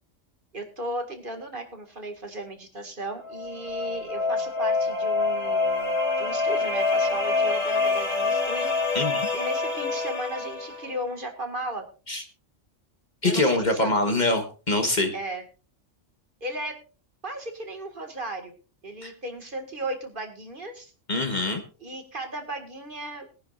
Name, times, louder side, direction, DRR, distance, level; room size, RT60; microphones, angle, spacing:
voice 1, 0.5-8.7 9.3-11.9 13.2-14.0 15.1-15.4 16.4-16.8 17.2-18.5 18.8-20.9 21.8-23.3, right 1 dB, 45° right, 4 dB, 2.1 m, -35 dB
sound 1, 3.2-11.0, left 3 dB, 60° left, 4.3 m, -26 dB
voice 2, 8.9-9.3 12.1-12.2 13.2-15.1 19.0-19.1 21.1-21.6, left 2 dB, 35° left, 5 dB, 1.5 m, -24 dB
21.5 x 10.0 x 2.5 m, 0.35 s
omnidirectional pair, 1.3 m